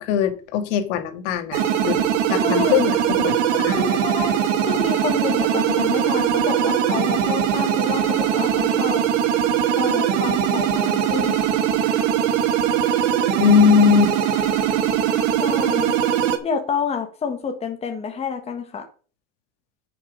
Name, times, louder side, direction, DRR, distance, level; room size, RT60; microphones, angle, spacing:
voice 1, 0.0-2.0 2.3-4.0 13.4-14.1, left 8 dB, 80° left, 2.0 m, -20 dB
sound 1, 1.5-16.4, right 9 dB, 85° right, 1.9 m, -21 dB
voice 2, 2.3-2.9 3.5-9.0 9.8-11.5 15.4-16.0 16.4-18.8, left 5 dB, 15° left, 1.4 m, -28 dB
9.9 x 6.2 x 5.1 m
supercardioid pair, 160°, 36 cm